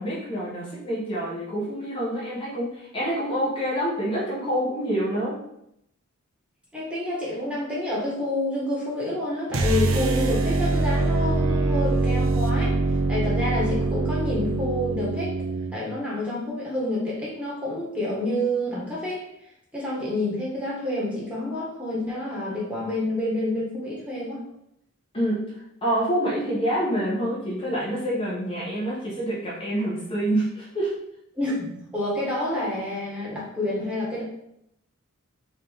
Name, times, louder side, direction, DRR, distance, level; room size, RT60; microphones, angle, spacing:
voice 1, 0.0-5.4 25.1-25.4 25.8-30.9, right 1 dB, 25° left, -7 dB, 0.9 m, -27 dB
voice 2, 6.7-15.4 15.7-19.3 19.7-24.4 31.3-34.2, left 1 dB, 5° right, -7 dB, 1.4 m, -28 dB
sound 1, 9.5-15.8, right 2 dB, 70° right, 0.5 m, -24 dB
3.6 x 3.4 x 3.5 m, 0.77 s
head